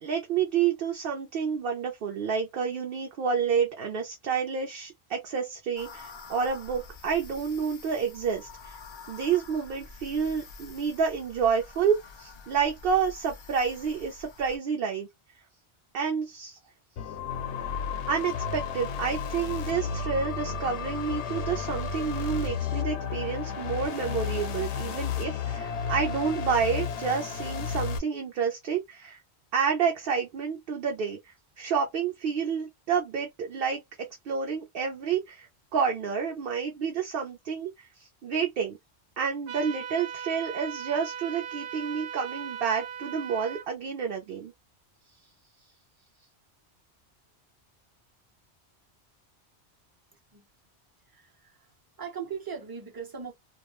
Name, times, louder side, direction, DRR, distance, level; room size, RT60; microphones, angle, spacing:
voice 1, 0.0-8.8 9.1-15.1 15.9-16.6 18.1-29.2 29.5-38.8 39.2-44.5, right 6 dB, 60° right, 0.7 m, -29 dB
sound 1, 5.8-14.6, left 4 dB, 50° left, 0.3 m, -47 dB
sound 2, 17.0-28.0, left 6 dB, 90° left, 0.9 m, -32 dB
sound 3, 39.5-43.7, right 8 dB, 85° right, 1.0 m, -38 dB
voice 2, 51.1-53.3, right 6 dB, 25° right, 0.6 m, -40 dB
2.3 x 2.1 x 2.9 m
omnidirectional pair, 1.1 m